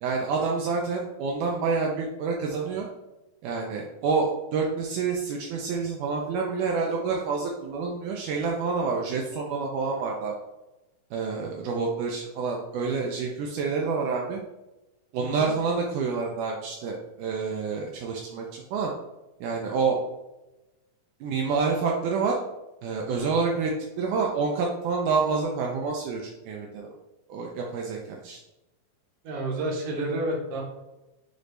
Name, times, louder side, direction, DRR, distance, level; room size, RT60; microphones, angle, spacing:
voice 1, 0.0-2.9 3.4-10.3 11.1-14.4 15.1-18.9 19.4-20.0 21.2-22.4 22.8-26.9 27.3-28.4, right 4 dB, 90° right, -1 dB, 1.7 m, -28 dB
voice 2, 15.2-15.5 29.2-30.6, right 1 dB, 70° right, -2 dB, 1.5 m, -30 dB
6.4 x 2.5 x 3.2 m, 0.99 s
omnidirectional pair, 4.2 m